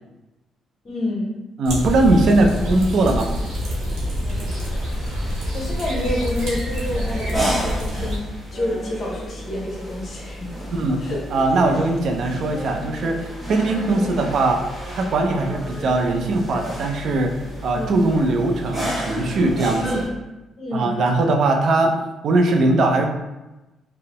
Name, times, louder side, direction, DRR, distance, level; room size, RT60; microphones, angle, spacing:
voice 1, 0.8-1.3 5.3-8.2 8.5-10.5 11.0-11.2 14.0-14.2 17.7-18.0 19.8-20.1 20.6-20.9, left 1 dB, 50° left, -2 dB, 0.7 m, -28 dB
voice 2, 1.6-3.3 10.7-11.0 11.3-13.2 13.5-14.6 14.9-17.3 17.6-20.0 20.7-21.9 22.2-23.0, right 2 dB, 65° right, 3 dB, 0.4 m, -20 dB
sound 1, 1.6-8.2, equal, 90° right, 0.8 m, -26 dB
sound 2, 2.2-20.1, equal, 10° right, 1.3 m, -32 dB
2.6 x 2.0 x 2.9 m, 1.0 s
cardioid pair, 90°, 0 cm